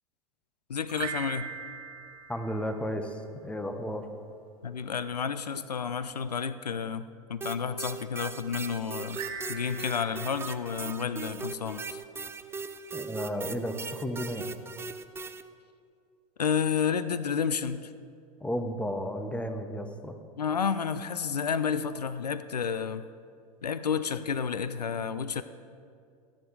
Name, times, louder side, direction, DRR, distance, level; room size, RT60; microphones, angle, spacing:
voice 1, 0.7-1.5 4.6-9.2 9.5-12.0 16.4-17.9 20.4-23.0 23.6-25.4, left 6 dB, 85° left, 13 dB, 0.5 m, -31 dB
sound 1, 0.8-3.3 9.1-11.7, right 6 dB, 60° right, 2.0 m, -41 dB
voice 2, 2.3-4.0 12.9-14.5 18.4-20.1, equal, 5° left, 7 dB, 1.1 m, -33 dB
sound 2, 7.4-15.4, right 4 dB, 10° right, 0.6 m, -39 dB
14.5 x 10.5 x 4.7 m, 2.3 s
figure-of-eight pair, 90°, 20 cm